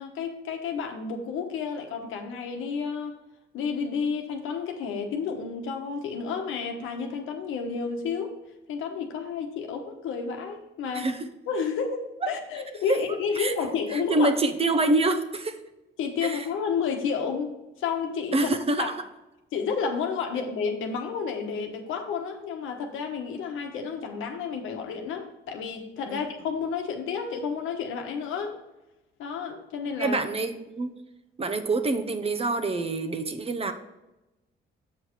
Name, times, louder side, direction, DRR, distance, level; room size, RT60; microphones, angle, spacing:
voice 1, 0.0-3.2 3.5-8.3 8.7-11.1 11.5-14.3 16.0-18.5 18.8-18.9 19.5-28.6 29.2-30.2, left 6 dB, 90° left, 4 dB, 1.2 m, -31 dB
voice 2, 13.9-15.5 16.2-16.4 18.3-18.9 26.1-26.2 30.0-30.9 31.4-33.7, right 2 dB, 30° right, 8 dB, 0.8 m, -26 dB
7.5 x 5.3 x 4.5 m, 0.98 s
cardioid pair, 90°, 20 cm